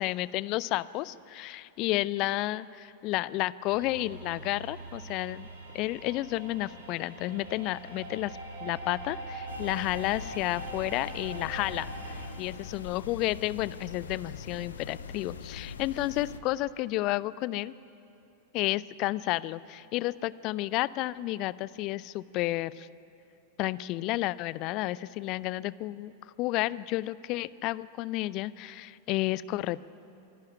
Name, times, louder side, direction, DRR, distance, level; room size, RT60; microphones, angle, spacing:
voice 1, 0.0-5.5 5.7-17.7 18.5-22.9 23.6-29.8, left 17 dB, 40° left, 19 dB, 0.4 m, -31 dB
sound 1, 3.7-12.3, right 3 dB, 70° right, 3.6 m, -42 dB
sound 2, 9.5-16.4, left 5 dB, 70° left, 1.1 m, -42 dB
25.0 x 11.5 x 9.9 m, 2.8 s
figure-of-eight pair, 90°, 0 cm